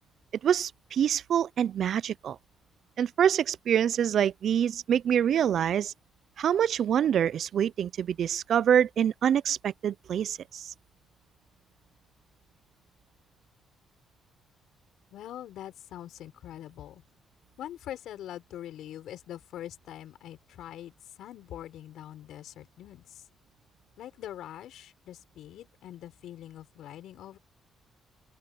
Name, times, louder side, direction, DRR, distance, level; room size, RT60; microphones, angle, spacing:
voice 1, 0.4-2.4 3.0-5.9 6.4-10.7, right 9 dB, 65° right, 0.5 m, -26 dB
voice 2, 15.1-17.0 17.6-23.2 24.0-27.4, left 12 dB, 80° left, 6.6 m, -43 dB
open air
cardioid pair, 90°, 0 cm